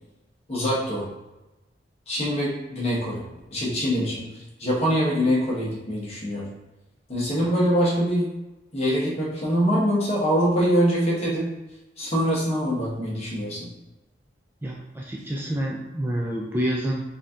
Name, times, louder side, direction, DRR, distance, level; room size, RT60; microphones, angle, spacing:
voice 1, 0.5-1.1 2.1-3.2 3.5-4.3 4.6-6.5 7.1-8.3 8.7-11.5 12.0-13.7, equal, 35° left, -5 dB, 1.2 m, -24 dB
voice 2, 14.6-17.0, right 1 dB, 10° right, -2 dB, 0.4 m, -28 dB
4.2 x 2.7 x 3.7 m, 1.0 s
head